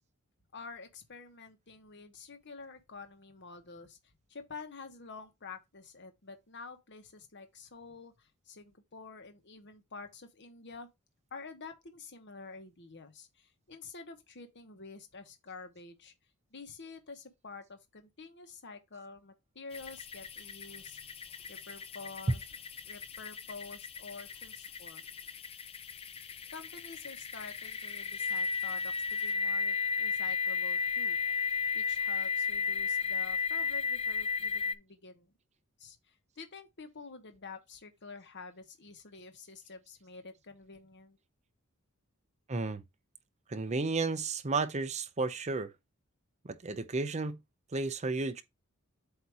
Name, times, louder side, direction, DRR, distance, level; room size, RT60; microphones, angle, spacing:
voice 1, 0.5-4.0 4.3-10.9 11.3-16.1 16.5-21.0 21.5-22.4 22.8-25.0 26.5-31.2 31.5-35.3 35.8-41.2, left 4 dB, 55° left, 1.2 m, -48 dB
sound 1, 19.7-34.7, left 5 dB, 25° left, 0.5 m, -35 dB
voice 2, 42.5-42.8 43.5-45.7 46.4-47.4 47.7-48.4, right 3 dB, 30° right, 0.7 m, -33 dB
8.1 x 2.8 x 4.8 m
head